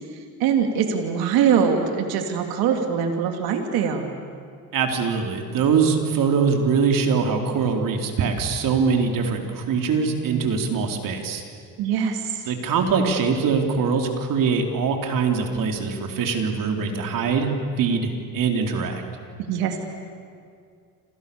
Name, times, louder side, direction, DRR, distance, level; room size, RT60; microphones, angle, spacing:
voice 1, 0.1-4.2 11.8-12.5 19.4-19.8, right 7 dB, 85° right, 4 dB, 3.1 m, -23 dB
voice 2, 4.7-11.4 12.5-17.5 17.8-19.0, right 5 dB, 65° right, 3 dB, 4.2 m, -23 dB
29.5 x 27.5 x 7.2 m, 2.2 s
cardioid pair, 100°, 36 cm